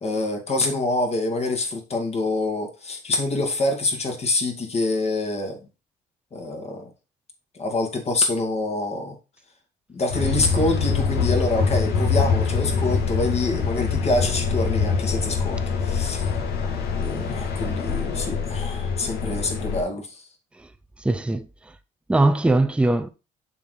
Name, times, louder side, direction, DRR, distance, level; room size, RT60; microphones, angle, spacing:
voice 1, 0.0-5.6 6.3-6.9 7.5-9.2 9.9-16.3 17.0-20.2, left 2 dB, 40° left, 2.3 m, -26 dB
sound 1, 10.1-19.8, left 5 dB, 75° left, 2.3 m, -24 dB
voice 2, 21.0-21.5 22.1-23.1, right 2 dB, 5° right, 0.6 m, -20 dB
6.9 x 4.9 x 4.0 m
cardioid pair, 110°, 17 cm